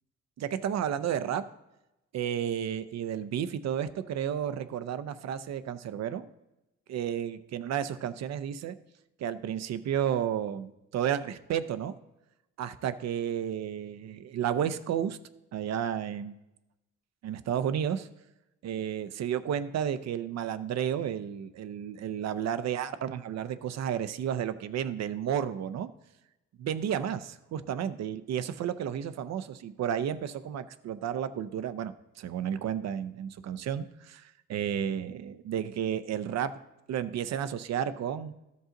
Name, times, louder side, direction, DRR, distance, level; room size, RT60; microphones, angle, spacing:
voice 1, 0.4-1.5 2.1-6.3 6.9-8.8 9.2-11.9 12.6-15.2 15.5-16.4 17.2-18.1 18.6-25.9 26.6-36.5 36.9-38.3, right 9 dB, 60° right, 13 dB, 0.6 m, -32 dB
13.0 x 5.5 x 3.8 m, 0.93 s
cardioid pair, 90°, 30 cm